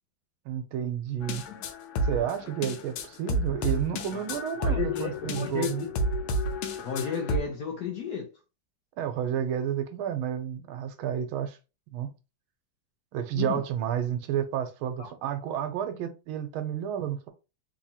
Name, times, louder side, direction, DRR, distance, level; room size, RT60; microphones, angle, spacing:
voice 1, 0.4-1.4 2.0-5.9 9.0-11.6 11.9-12.1 13.1-17.3, right 9 dB, 85° right, 1.4 m, -31 dB
sound 1, 1.2-7.4, equal, 90° left, 1.5 m, -31 dB
voice 2, 4.6-5.9 6.8-8.3 13.3-13.6 15.0-15.1, left 7 dB, 70° left, 1.0 m, -33 dB
3.6 x 2.7 x 2.7 m
omnidirectional pair, 2.3 m